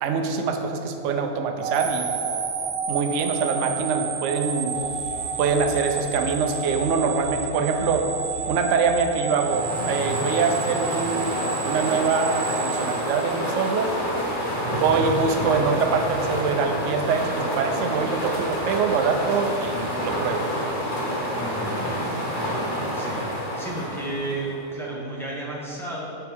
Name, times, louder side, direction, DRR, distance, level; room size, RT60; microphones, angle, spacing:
voice 1, 0.0-2.1 2.9-4.8 5.4-8.1 8.5-11.3 11.6-13.9 14.8-20.5, right 5 dB, 65° right, 5 dB, 0.8 m, -24 dB
sound 1, 1.6-13.8, right 6 dB, 90° right, 1.2 m, -30 dB
sound 2, 4.7-9.1, equal, 70° left, 1.8 m, -42 dB
sound 3, 9.2-24.7, equal, 35° left, 1.3 m, -28 dB
voice 2, 14.6-15.0 21.3-22.0 22.4-22.6 22.9-23.3 23.5-26.1, right 2 dB, ahead, -5 dB, 0.9 m, -33 dB
7.6 x 6.1 x 3.5 m, 3.0 s
omnidirectional pair, 1.7 m